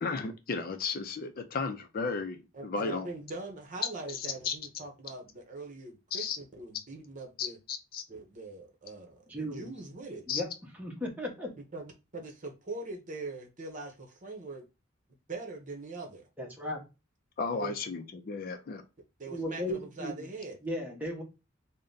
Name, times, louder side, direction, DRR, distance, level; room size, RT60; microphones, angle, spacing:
voice 1, 0.0-3.1 4.1-4.5 6.1-6.4 7.4-8.0 10.3-10.4 17.4-18.8, left 5 dB, 45° left, 0.4 m, -34 dB
voice 2, 2.5-7.6 8.1-10.3 11.7-14.7 15.3-16.3 17.6-17.7 19.2-20.6, right 3 dB, 40° right, 1.0 m, -42 dB
voice 3, 9.3-9.7 10.3-10.5 10.8-11.5 16.4-16.8 19.3-20.3 20.6-21.2, left 1 dB, 10° right, 1.0 m, -36 dB
3.8 x 2.2 x 3.8 m
head